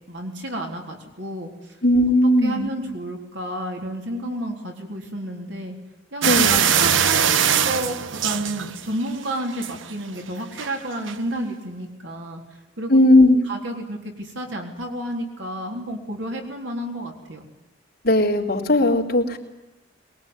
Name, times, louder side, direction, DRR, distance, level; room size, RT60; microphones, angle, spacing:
voice 1, 0.1-1.8 2.4-5.8 6.1-12.4 12.8-17.5, right 1 dB, 70° right, 2 dB, 3.9 m, -31 dB
voice 2, 1.8-2.7 6.2-6.6 12.9-13.4 18.0-19.4, left 1 dB, 50° left, 0 dB, 3.9 m, -17 dB
sound 1, 6.2-9.1 9.5-9.9 10.6-10.7 11.1-11.2, right 8 dB, 85° right, 0.9 m, -21 dB
23.0 x 21.5 x 9.8 m, 1.0 s
head